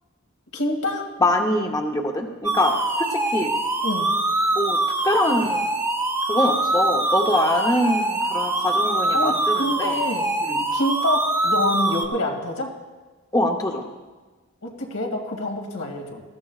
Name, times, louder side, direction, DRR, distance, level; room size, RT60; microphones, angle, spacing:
voice 1, 0.5-1.1 3.8-4.1 9.1-10.3 10.7-12.7 14.6-16.2, left 1 dB, 85° left, 1 dB, 2.3 m, -26 dB
voice 2, 1.2-3.5 4.5-4.8 5.0-5.7 6.3-10.0 10.4-10.6 13.3-13.8, left 1 dB, 15° left, 2 dB, 0.8 m, -23 dB
sound 1, 2.4-12.1, right 2 dB, 15° right, 0.8 m, -23 dB
19.5 x 14.0 x 2.4 m, 1.3 s
head